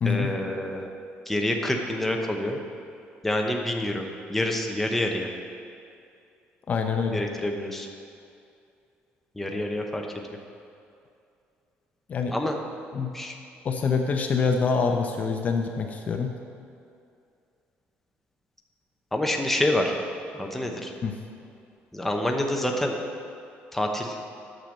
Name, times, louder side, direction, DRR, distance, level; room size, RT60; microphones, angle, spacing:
voice 1, 0.0-0.9 1.3-2.6 3.2-5.3 7.1-7.9 9.4-10.1 12.3-12.6 13.1-13.3 19.1-19.9 20.3-20.9 21.9-22.9 23.7-24.2, left 1 dB, 5° left, 2 dB, 0.9 m, -27 dB
voice 2, 6.7-7.2 12.1-12.3 12.9-13.1 13.6-16.3 21.0-21.1, left 5 dB, 35° left, 4 dB, 0.7 m, -25 dB
9.1 x 6.8 x 6.5 m, 2.5 s
cardioid pair, 135°, 4 cm